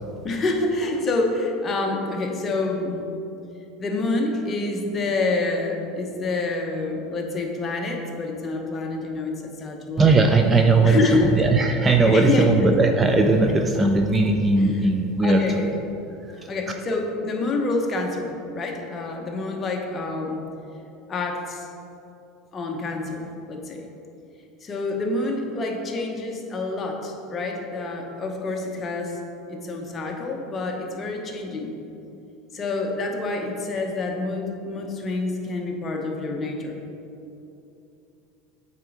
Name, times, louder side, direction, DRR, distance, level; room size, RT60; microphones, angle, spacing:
voice 1, 0.2-3.0 3.8-10.2 10.8-11.3 11.9-12.7 13.8-13.9 14.6-14.9 15.2-15.7 16.5-20.4 21.1-21.7 22.5-23.8 24.6-29.2 29.5-31.8 32.5-36.9, left 3 dB, 25° left, 1 dB, 0.9 m, -27 dB
voice 2, 10.0-11.0 11.4-15.6 16.3-16.5, right 3 dB, 15° right, 4 dB, 0.4 m, -18 dB
8.2 x 4.1 x 4.9 m, 2.8 s
supercardioid pair, 140°, 0 cm